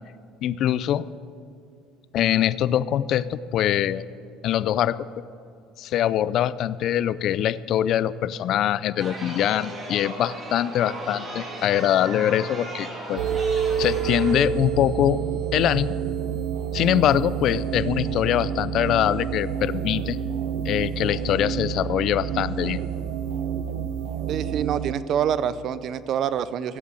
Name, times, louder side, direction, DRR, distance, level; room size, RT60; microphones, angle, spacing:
voice 1, 0.4-1.0 2.1-4.0 4.4-5.0 5.8-13.2 13.5-15.2 15.5-15.9 16.7-20.2 20.6-22.8, left 11 dB, 55° left, 18 dB, 0.4 m, -23 dB
Chatter, 9.0-14.3, right 2 dB, 30° right, 2.9 m, -36 dB
sound 1, 13.2-24.9, right 8 dB, 70° right, 0.9 m, -28 dB
voice 2, 24.3-26.8, right 9 dB, 50° right, 16 dB, 0.5 m, -26 dB
16.5 x 7.4 x 8.9 m, 2.4 s
cardioid pair, 115°, 0 cm